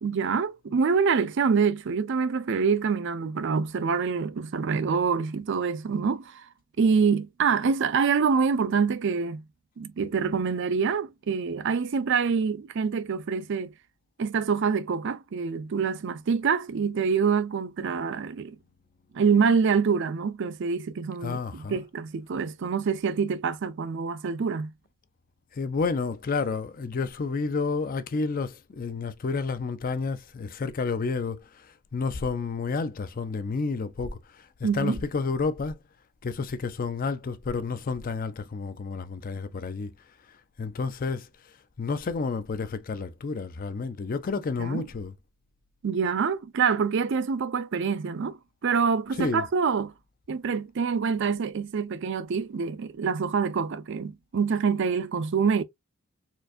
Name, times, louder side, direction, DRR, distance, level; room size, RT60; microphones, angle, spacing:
voice 1, 0.0-6.4 6.8-9.4 9.8-13.7 14.2-18.6 19.1-24.7 34.6-35.0 44.6-44.8 45.8-49.9 50.3-55.6, right 5 dB, 60° right, 0.4 m, -26 dB
voice 2, 21.2-21.8 25.5-35.8 36.2-39.9 40.3-41.3 41.8-45.1 49.2-49.5, left 4 dB, 40° left, 0.4 m, -30 dB
4.4 x 2.6 x 2.5 m
head